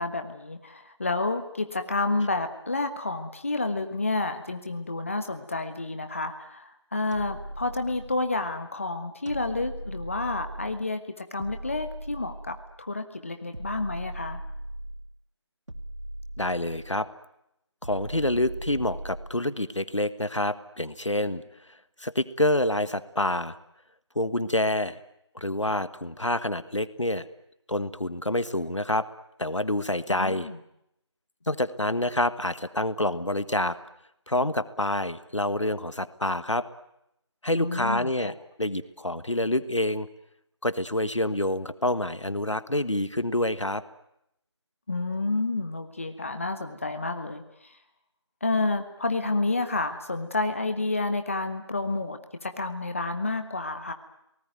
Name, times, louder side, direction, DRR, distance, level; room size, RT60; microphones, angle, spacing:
voice 1, 0.0-14.4 30.1-30.6 37.5-38.3 44.9-47.8 48.4-53.9, left 3 dB, 25° left, 7 dB, 1.4 m, -30 dB
sound 1, 7.1-8.4 9.3-10.9 11.4-12.8 13.5-15.1 15.7-17.1 17.8-19.4, right 1 dB, 80° right, 2.2 m, -39 dB
voice 2, 16.4-17.1 17.8-21.4 22.0-23.5 24.1-25.0 25.3-27.3 27.7-29.0 29.4-30.5 31.5-33.8 34.3-36.6 37.4-40.1 40.6-43.8, left 1 dB, 85° left, 14 dB, 1.5 m, -27 dB
29.5 x 19.0 x 9.4 m, 0.81 s
figure-of-eight pair, 170°, 15 cm